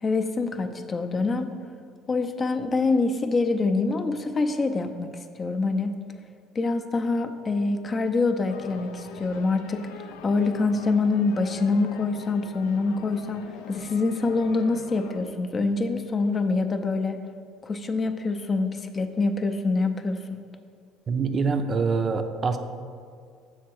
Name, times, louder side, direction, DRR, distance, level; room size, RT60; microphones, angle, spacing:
voice 1, 0.0-1.5 2.1-5.1 5.3-5.9 6.5-17.2 17.6-20.4, left 3 dB, 30° left, 7 dB, 0.5 m, -25 dB
sound 1, 8.5-15.3, left 7 dB, 85° left, 0.4 m, -43 dB
voice 2, 21.1-22.6, right 4 dB, 35° right, 7 dB, 0.5 m, -25 dB
6.4 x 3.7 x 6.1 m, 2.1 s
supercardioid pair, 100°, 0 cm